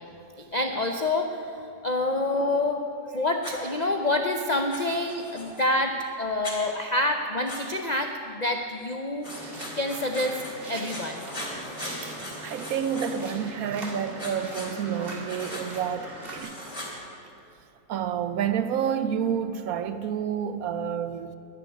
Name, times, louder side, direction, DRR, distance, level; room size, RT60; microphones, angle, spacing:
voice 1, 0.5-9.3 9.8-10.4 10.7-11.2, left 2 dB, 45° left, 0.5 m, -27 dB
Writing, 3.4-3.6 4.7-5.6 6.4-6.6 7.5-7.6 9.2-10.5 10.8-13.3 14.2-14.7 15.3-15.7 16.3-16.9, left 1 dB, 20° left, 3.0 m, -39 dB
sound 1, 9.2-16.4, right 2 dB, 35° right, 2.4 m, -41 dB
voice 2, 12.0-16.6 17.9-21.3, right 8 dB, 65° right, 1.1 m, -29 dB
12.0 x 10.5 x 9.4 m
omnidirectional pair, 1.8 m